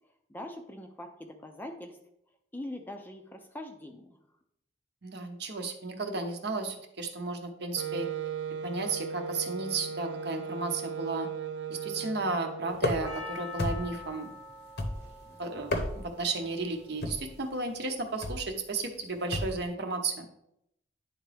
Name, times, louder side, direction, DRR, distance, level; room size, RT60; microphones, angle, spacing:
voice 1, 0.3-2.0 2.5-4.2, left 1 dB, 10° left, 4 dB, 0.5 m, -42 dB
voice 2, 5.0-8.1 8.6-11.3 11.7-14.3 15.3-20.3, right 3 dB, 60° right, 4 dB, 0.8 m, -34 dB
Wind instrument woodwind instrument, 7.8-13.4, right 6 dB, 75° right, 0.4 m, -37 dB
sound 1, 12.8-13.2 13.6-14.1 14.8-15.2 15.6-16.2 17.0-17.3 18.2-18.5 19.3-19.6, left 1 dB, 55° left, 0.8 m, -32 dB
Percussion, 13.0-17.4 18.0-18.1, left 3 dB, 10° right, 1.1 m, -45 dB
9.9 x 3.7 x 3.4 m, 0.78 s
head